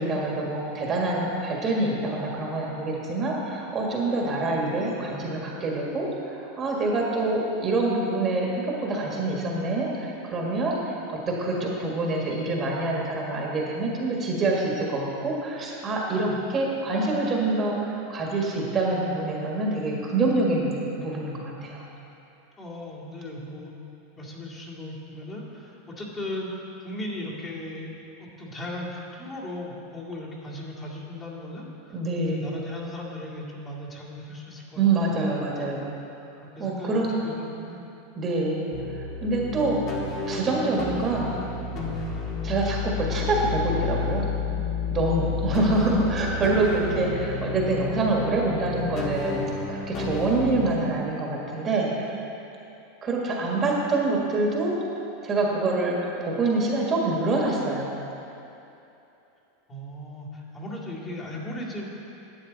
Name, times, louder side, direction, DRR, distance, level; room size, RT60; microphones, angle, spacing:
voice 1, 0.0-21.9 31.9-32.5 34.8-35.9 36.6-37.2 38.2-38.7 39.2-39.8 40.3-41.4 42.4-44.3 44.9-52.2 53.0-54.7 55.2-57.9, right 2 dB, 30° right, -2 dB, 1.6 m, -26 dB
voice 2, 16.0-16.4 22.6-23.7 24.1-27.9 28.2-35.1 36.4-37.8 59.7-61.8, left 1 dB, 25° left, -6 dB, 2.1 m, -37 dB
sound 1, 38.7-50.7, left 4 dB, 40° left, 1.7 m, -31 dB
11.5 x 8.5 x 4.0 m, 2.8 s
supercardioid pair, 130°, 0 cm